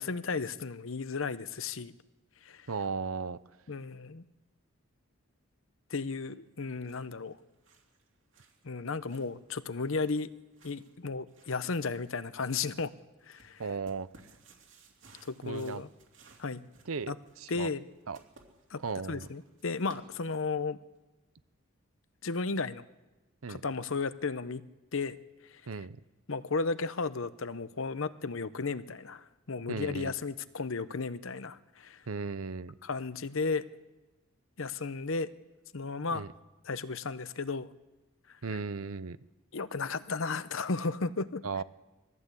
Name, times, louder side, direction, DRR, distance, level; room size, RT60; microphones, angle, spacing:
voice 1, 0.0-1.9 2.4-2.7 3.7-4.2 5.9-7.4 8.6-10.3 10.6-12.9 13.3-13.6 15.2-15.9 16.4-16.6 17.1-17.2 17.5-17.8 18.7-18.8 19.1-20.8 22.2-22.8 23.5-24.6 24.9-25.1 26.3-32.0 32.8-33.7 34.6-35.3 35.7-36.2 36.6-37.7 38.5-38.6 39.5-41.4, left 4 dB, 70° left, 14 dB, 0.8 m, -34 dB
voice 2, 2.7-3.4 13.6-14.1 15.4-15.8 16.9-17.7 18.1-18.2 18.8-19.3 23.4-23.6 25.7-26.0 29.7-30.1 32.1-32.7 36.1-36.3 38.4-39.2 41.4-41.6, right 4 dB, 80° right, 16 dB, 0.7 m, -36 dB
sound 1, 6.5-20.6, right 3 dB, 60° right, 3.2 m, -61 dB
21.5 x 15.0 x 8.3 m, 1.1 s
head